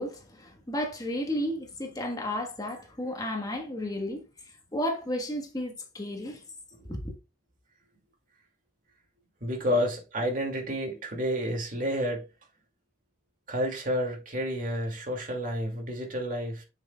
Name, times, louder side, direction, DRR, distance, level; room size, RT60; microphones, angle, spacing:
voice 1, 0.0-4.2 4.7-6.4 6.8-7.1, left 1 dB, 20° left, 1.3 m, -33 dB
voice 2, 9.4-12.2 13.5-16.6, equal, 50° right, 2.4 m, -30 dB
7.2 x 7.0 x 2.3 m
head